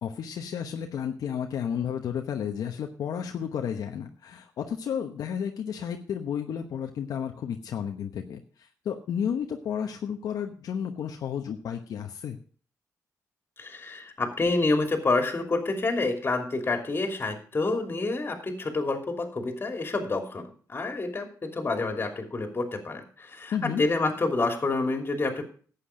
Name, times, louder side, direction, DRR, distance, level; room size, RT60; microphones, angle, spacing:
voice 1, 0.0-8.4 8.8-12.4 23.5-23.8, left 8 dB, 75° left, 4 dB, 1.0 m, -32 dB
voice 2, 13.6-25.4, left 3 dB, 35° left, 4 dB, 2.9 m, -28 dB
11.5 x 8.4 x 5.0 m, 0.43 s
cardioid pair, 80°, 6 cm